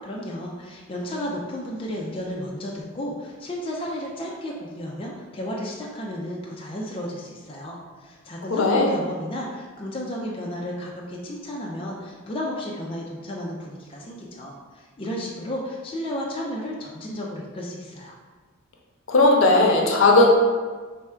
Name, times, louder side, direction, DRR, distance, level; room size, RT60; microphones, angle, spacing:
voice 1, 0.0-18.2, left 1 dB, 25° left, -3 dB, 0.4 m, -33 dB
voice 2, 8.5-8.9 19.1-20.3, left 2 dB, 70° left, 0 dB, 0.6 m, -17 dB
3.3 x 2.3 x 4.3 m, 1.4 s
head